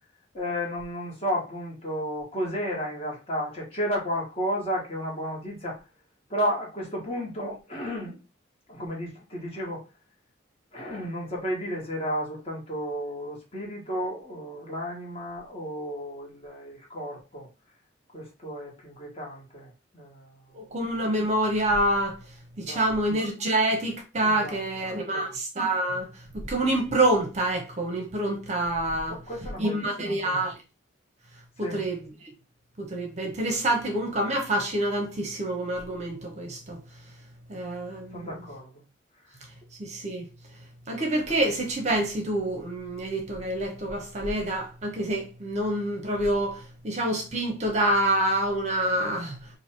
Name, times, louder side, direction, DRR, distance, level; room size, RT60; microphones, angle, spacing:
voice 1, 0.3-5.8 6.3-8.2 8.7-9.9 10.7-17.5 18.1-20.6 22.6-22.9 24.2-25.2 29.1-30.4 31.6-31.8 38.1-38.8 39.2-39.4, equal, 30° left, 1.5 m, -33 dB
voice 2, 20.5-22.2 22.6-26.1 26.3-29.2 29.6-30.5 31.6-32.3 32.8-36.8 37.5-38.3 39.8-40.3 40.9-49.4, right 1 dB, 35° right, 0.8 m, -27 dB
2.9 x 2.6 x 4.3 m
head